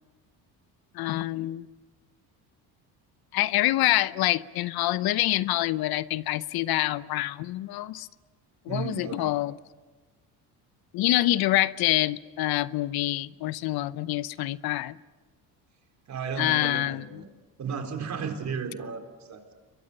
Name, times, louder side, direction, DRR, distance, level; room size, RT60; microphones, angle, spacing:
voice 1, 0.9-1.7 3.3-8.1 8.7-9.6 10.9-15.0 16.4-17.2, left 16 dB, 65° left, 17 dB, 0.8 m, -26 dB
voice 2, 8.7-9.3 16.1-17.3 17.6-19.5, right 6 dB, 45° right, 5 dB, 4.1 m, -34 dB
28.5 x 22.5 x 6.7 m, 1.3 s
cardioid pair, 105°, 39 cm